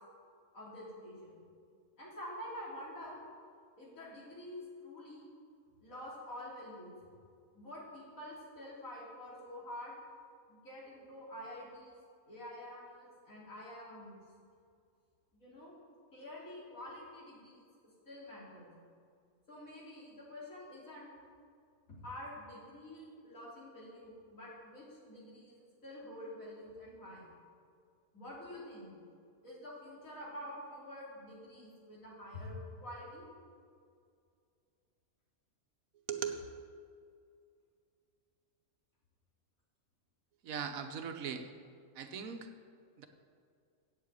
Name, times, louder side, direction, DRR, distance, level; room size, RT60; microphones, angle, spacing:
voice 1, 0.5-1.4 2.0-3.2 3.8-5.3 5.8-6.9 7.5-9.9 10.5-12.0 12.3-14.2 15.3-15.8 16.1-17.7 18.1-18.7 19.5-21.1 21.9-25.6 25.8-27.3 28.1-29.0 29.4-33.3, left 1 dB, 75° left, -6 dB, 3.5 m, -47 dB
voice 2, 36.1-36.4 40.4-41.4 42.0-42.5 43.0-43.1, right 7 dB, 80° right, 7 dB, 1.2 m, -39 dB
8.2 x 7.6 x 8.2 m, 2.3 s
omnidirectional pair, 1.4 m